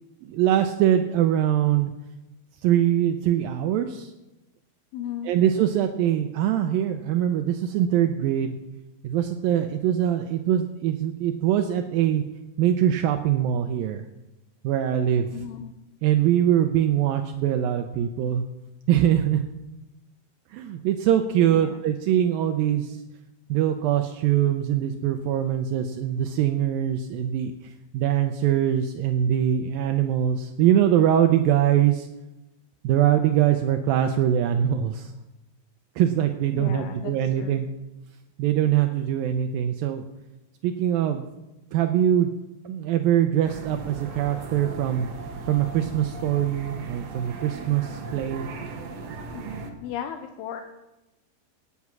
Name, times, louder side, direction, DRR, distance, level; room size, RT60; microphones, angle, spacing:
voice 1, 0.2-1.9 2.6-4.1 5.2-8.6 9.0-12.2 12.6-14.0 14.6-15.3 16.0-18.4 18.9-19.4 20.5-23.0 23.5-27.5 27.9-32.1 32.8-35.1 36.0-37.7 38.4-40.1 40.6-41.3 41.7-42.3 42.6-45.1 45.4-48.5, right 10 dB, 80° right, 6 dB, 2.3 m, -23 dB
voice 2, 4.9-5.3 15.3-15.7 21.5-21.8 36.5-37.6 49.3-49.4 49.8-50.6, left 9 dB, 85° left, 6 dB, 2.8 m, -35 dB
sound 1, 43.4-49.7, right 3 dB, 55° right, 2.0 m, -37 dB
18.0 x 8.4 x 6.1 m, 0.96 s
omnidirectional pair, 4.5 m